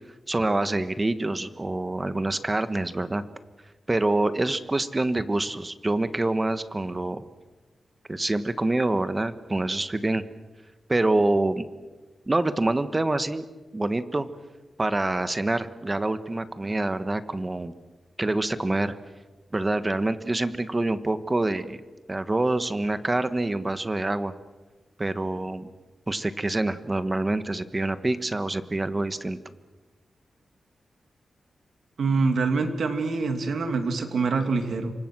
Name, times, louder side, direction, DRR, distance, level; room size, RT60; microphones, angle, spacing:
voice 1, 0.3-3.2 3.9-7.2 8.1-10.2 10.9-11.6 12.3-13.4 13.7-14.3 14.8-17.7 18.2-18.9 19.5-21.8 22.1-24.3 25.0-25.7 26.1-29.4, right 2 dB, 20° right, 11 dB, 1.4 m, -26 dB
voice 2, 32.0-34.9, right 4 dB, 75° right, 6 dB, 2.8 m, -25 dB
28.0 x 24.5 x 6.2 m, 1.2 s
wide cardioid pair, 115°, 0 cm